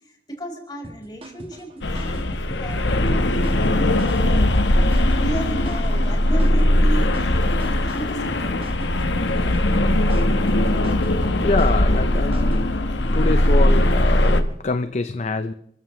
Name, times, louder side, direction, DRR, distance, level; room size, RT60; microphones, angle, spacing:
voice 1, 0.0-3.3 3.9-8.6, right 1 dB, 25° left, 0 dB, 4.5 m, -35 dB
sound 1, 0.8-12.6, right 1 dB, 30° right, 1.4 m, -40 dB
sound 2, 1.8-14.4, left 1 dB, 75° left, 1.2 m, -19 dB
voice 2, 10.9-12.8 13.1-15.5, left 3 dB, 40° left, 10 dB, 0.6 m, -26 dB
29.0 x 14.5 x 3.2 m, 0.71 s
head